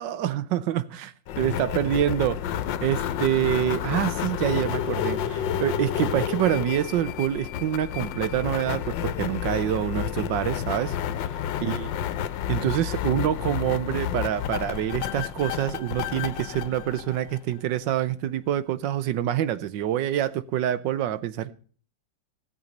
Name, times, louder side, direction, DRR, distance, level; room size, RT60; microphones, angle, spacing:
voice 1, 0.0-2.4 2.8-11.0 11.6-11.9 12.5-21.5, right 11 dB, 75° right, 1.4 m, -26 dB
sound 1, 1.3-17.8, left 10 dB, 80° left, 1.4 m, -30 dB
17.0 x 7.1 x 5.2 m
omnidirectional pair, 2.0 m